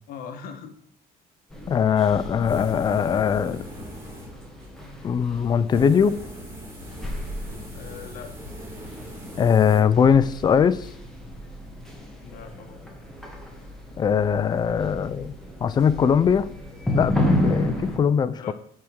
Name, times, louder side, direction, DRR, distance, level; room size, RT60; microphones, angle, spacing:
voice 1, 0.1-0.7 7.7-8.3 12.2-12.8 18.4-18.5, left 7 dB, 65° left, 6 dB, 1.2 m, -40 dB
sound 1, 1.5-18.0, left 1 dB, 5° left, 1.2 m, -32 dB
voice 2, 1.7-3.6 5.0-6.2 9.4-10.9 14.0-15.3 15.6-16.5 16.9-18.5, left 7 dB, 25° left, 13 dB, 0.4 m, -21 dB
sound 2, 2.4-4.7 5.7-9.8, equal, 15° right, 2.1 m, -40 dB
7.4 x 3.5 x 6.2 m, 0.65 s
cardioid pair, 150°, 16 cm